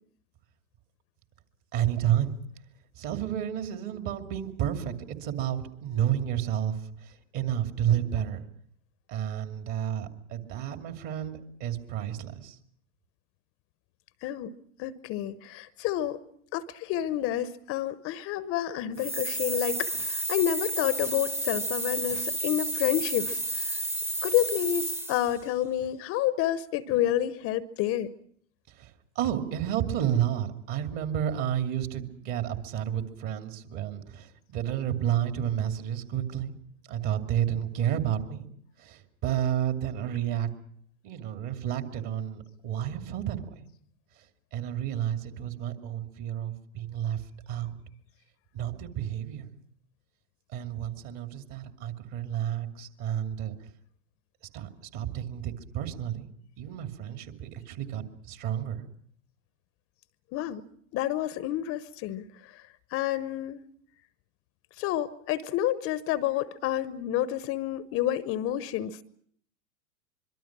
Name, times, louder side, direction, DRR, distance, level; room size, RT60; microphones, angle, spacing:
voice 1, 1.7-2.4 3.0-5.0 5.2-6.8 7.0-8.5 9.1-12.6 28.8-28.9 29.2-36.5 36.9-38.5 38.8-40.5 41.0-43.5 44.5-47.2 47.5-47.7 48.5-49.5 50.5-53.5 54.5-56.3 56.6-58.8, right 10 dB, 40° right, 6 dB, 2.7 m, -31 dB
voice 2, 14.2-14.5 14.8-16.2 16.5-23.8 24.2-28.1 60.3-60.6 60.9-62.6 62.9-63.6 64.8-69.0, left 12 dB, 30° left, 16 dB, 0.8 m, -29 dB
sound 1, 19.0-25.4, right 1 dB, 5° right, 1.0 m, -31 dB
24.5 x 23.5 x 6.0 m, 0.64 s
hypercardioid pair, 105°, 42 cm